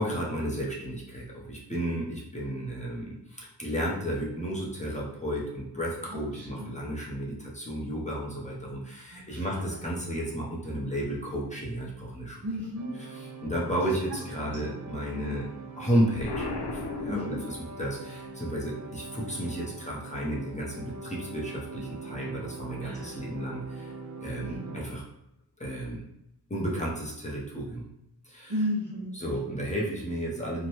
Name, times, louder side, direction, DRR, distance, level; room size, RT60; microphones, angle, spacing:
voice 1, 0.0-12.4 13.0-15.5 15.8-23.9 24.2-25.0 25.6-26.1 26.5-27.9 28.3-28.5 29.1-30.7, right 1 dB, 15° left, -5 dB, 0.7 m, -33 dB
voice 2, 6.1-6.8 9.1-9.9 12.4-12.9 14.4-14.8 15.1-15.4 17.1-17.5 22.8-23.2 24.4-24.8 28.5-29.6, equal, 65° right, -4 dB, 1.2 m, -35 dB
sound 1, 12.7-24.8, right 4 dB, 45° right, 0.4 m, -43 dB
Explosion, 16.2-18.0, left 3 dB, 75° left, 0.6 m, -35 dB
2.9 x 2.1 x 2.9 m, 0.82 s
wide cardioid pair, 75°, 41 cm